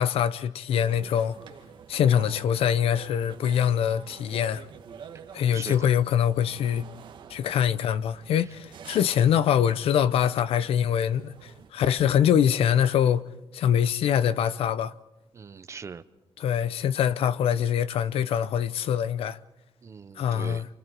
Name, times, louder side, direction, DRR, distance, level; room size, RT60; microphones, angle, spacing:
voice 1, 0.0-1.4 1.9-4.7 5.3-6.8 7.3-13.3 13.5-14.9 16.4-19.4 20.2-20.7, left 9 dB, 85° left, 0.8 m, -24 dB
sound 1, 0.7-11.7, right 7 dB, 55° right, 1.7 m, -47 dB
voice 2, 5.5-5.9 8.4-8.5 15.3-16.0 19.8-20.6, right 6 dB, 30° right, 0.8 m, -40 dB
29.0 x 28.0 x 4.6 m
wide cardioid pair, 175°, 10 cm